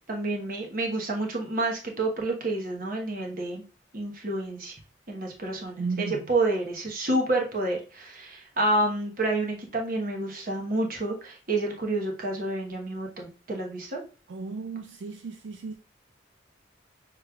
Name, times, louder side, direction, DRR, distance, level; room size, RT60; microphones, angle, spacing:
voice 1, 0.1-3.6 3.9-4.8 5.1-14.0, right 2 dB, 45° right, 1.0 m, -29 dB
voice 2, 5.8-6.2 14.3-15.8, right 4 dB, 70° right, 0.3 m, -34 dB
6.5 x 3.1 x 2.3 m
head